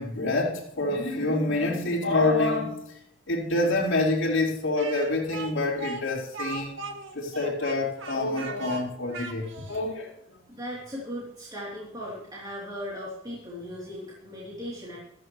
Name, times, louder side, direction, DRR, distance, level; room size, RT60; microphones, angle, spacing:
voice 1, 0.0-3.0 3.3-6.8 7.1-10.4, left 2 dB, 70° left, 4.3 m, -27 dB
Speech, 4.8-9.9, right 4 dB, 70° right, 1.7 m, -39 dB
voice 2, 10.5-15.0, equal, 20° right, 3.4 m, -37 dB
15.0 x 13.5 x 3.2 m
head